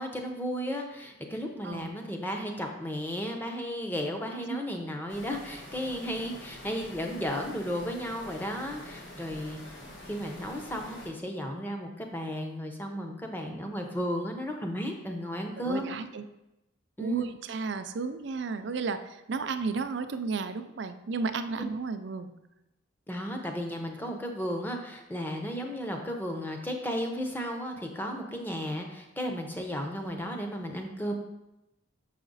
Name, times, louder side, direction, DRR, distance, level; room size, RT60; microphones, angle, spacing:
voice 1, 0.0-9.6 10.1-16.0 17.0-17.3 23.1-31.1, equal, 10° left, 3 dB, 0.7 m, -34 dB
sound 1, 5.1-11.1, left 1 dB, 65° left, 1.4 m, -46 dB
voice 2, 15.6-16.2 17.0-22.3, right 4 dB, 60° right, 10 dB, 0.4 m, -33 dB
6.4 x 4.9 x 4.0 m, 0.94 s
head